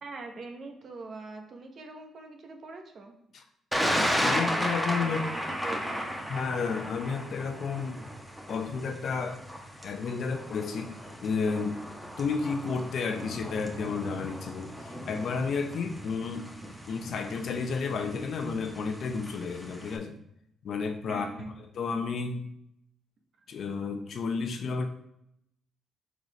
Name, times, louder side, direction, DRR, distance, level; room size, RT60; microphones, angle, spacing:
voice 1, 0.0-3.1 5.0-6.4 21.1-21.5, right 3 dB, 55° right, 3 dB, 1.1 m, -43 dB
Thunder, 3.7-20.0, equal, 5° right, 1.1 m, -35 dB
voice 2, 4.2-5.2 6.3-8.0 8.5-9.4 9.8-11.0 11.2-11.8 12.2-16.5 16.9-20.2 20.6-21.3 21.6-22.4 23.5-24.9, left 5 dB, 60° left, 6 dB, 0.7 m, -31 dB
4.8 x 4.0 x 4.9 m, 0.77 s
cardioid pair, 90°, 0 cm